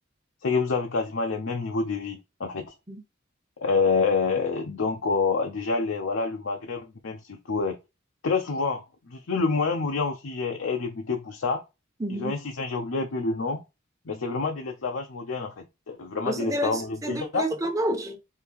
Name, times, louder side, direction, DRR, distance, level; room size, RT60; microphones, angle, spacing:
voice 1, 0.4-2.7 3.6-7.8 8.2-11.6 12.1-13.6 14.1-17.5, left 4 dB, 70° left, 0.6 m, -27 dB
voice 2, 12.0-12.3 16.2-18.2, right 1 dB, 15° right, 0.9 m, -29 dB
4.7 x 2.8 x 3.4 m
head